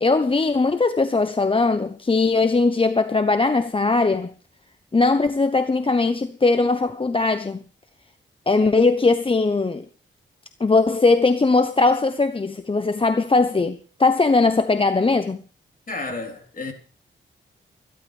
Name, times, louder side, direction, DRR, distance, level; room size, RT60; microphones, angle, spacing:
voice 1, 0.0-4.3 4.9-7.6 8.5-9.8 10.6-15.4, left 3 dB, 25° left, 0.9 m, -20 dB
voice 2, 15.9-16.7, left 3 dB, 45° left, 3.7 m, -31 dB
24.5 x 12.0 x 3.5 m
cardioid pair, 75°, 20 cm